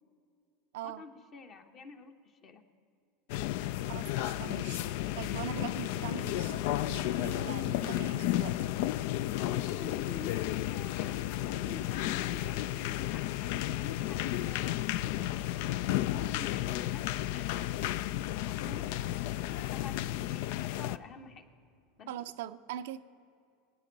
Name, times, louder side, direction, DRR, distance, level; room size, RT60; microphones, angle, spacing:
voice 1, 0.8-2.6 3.8-4.0 9.4-18.0 18.5-21.4 22.0-22.1, left 4 dB, 40° left, 6 dB, 1.2 m, -49 dB
sound 1, 3.3-21.0, left 14 dB, 65° left, 0.3 m, -33 dB
voice 2, 3.9-4.8 5.1-8.7 22.1-23.0, right 11 dB, 70° right, 11 dB, 0.5 m, -42 dB
22.5 x 9.2 x 4.0 m, 2.5 s
hypercardioid pair, 85°, 0 cm